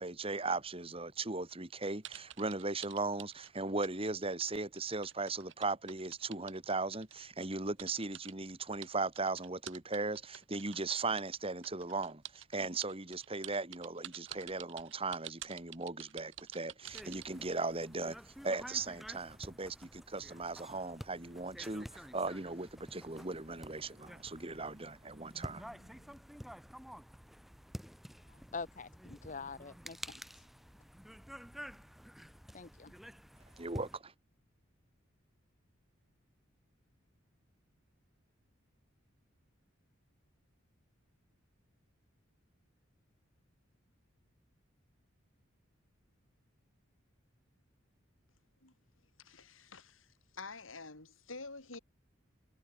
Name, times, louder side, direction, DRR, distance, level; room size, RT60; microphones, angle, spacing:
voice 1, 0.0-25.9 33.6-34.1, right 3 dB, 30° right, 2.2 m, -38 dB
sound 1, 2.0-4.0 4.2-7.2 7.8-8.3 8.8-10.8 11.2-17.3, right 12 dB, 65° right, 1.9 m, -49 dB
sound 2, 16.8-34.0, equal, ahead, 2.2 m, -50 dB
voice 2, 28.3-30.4 32.5-32.9, left 4 dB, 40° left, 0.9 m, -45 dB
voice 3, 49.2-50.1 50.3-51.8, left 3 dB, 80° left, 4.8 m, -48 dB
head